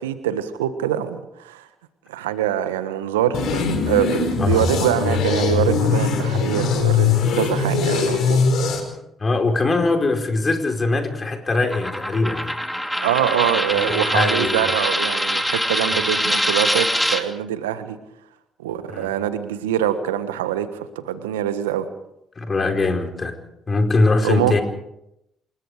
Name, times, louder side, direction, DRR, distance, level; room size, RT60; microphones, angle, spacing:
voice 1, 0.0-1.6 2.1-8.4 13.0-18.0 18.6-21.9 24.2-24.6, right 10 dB, 85° right, 12 dB, 1.4 m, -24 dB
sound 1, 3.3-8.8, left 5 dB, 60° left, 5.1 m, -20 dB
voice 2, 4.4-4.7 9.2-12.5 13.7-14.7 15.9-16.0 18.9-19.2 22.4-23.4 23.7-24.6, left 3 dB, 35° left, 4 dB, 4.5 m, -22 dB
Coin (dropping), 11.7-17.2, equal, ahead, 2.7 m, -23 dB
28.5 x 20.5 x 5.0 m, 0.82 s
hypercardioid pair, 45°, 0 cm